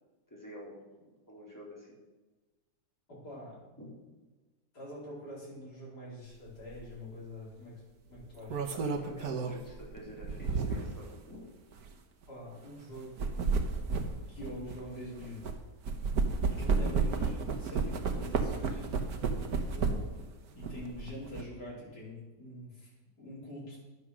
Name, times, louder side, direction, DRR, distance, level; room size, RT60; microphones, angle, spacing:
voice 1, 0.3-0.9 1.3-2.0 3.8-3.9 8.7-11.5, equal, 10° left, -4 dB, 3.7 m, -48 dB
voice 2, 3.1-3.6 4.7-7.8 8.1-8.7 12.3-13.2 14.3-15.5 16.5-18.9 19.7-20.1 20.5-22.9 23.2-23.8, left 1 dB, 80° left, -7 dB, 5.0 m, -45 dB
sound 1, 6.7-6.9 8.2-11.0 11.7-11.9 13.0-15.5 15.9-20.2 20.6-21.4, right 4 dB, 70° right, 1.6 m, -32 dB
11.0 x 9.5 x 6.2 m, 1.2 s
omnidirectional pair, 1.7 m